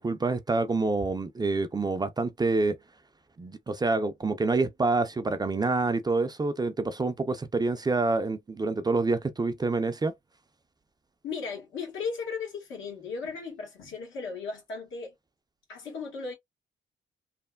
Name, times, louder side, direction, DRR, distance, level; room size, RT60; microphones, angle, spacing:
voice 1, 0.0-2.8 3.4-10.1, right 3 dB, 20° right, 0.4 m, -27 dB
voice 2, 11.2-15.1 15.7-16.3, left 5 dB, 80° left, 1.4 m, -36 dB
3.2 x 2.1 x 2.2 m
cardioid pair, 90°, 20 cm